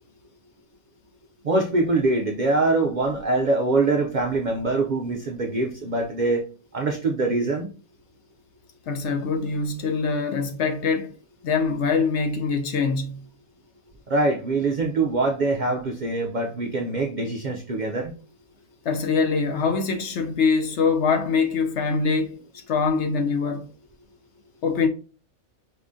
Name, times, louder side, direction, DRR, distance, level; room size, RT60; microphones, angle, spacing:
voice 1, 1.4-7.7 14.1-18.1, right 2 dB, 75° right, 0.4 m, -24 dB
voice 2, 8.9-11.1 11.4-13.3 18.8-22.4 22.7-23.7 24.6-24.9, left 5 dB, 65° left, 0.8 m, -23 dB
4.8 x 3.6 x 2.6 m
omnidirectional pair, 1.5 m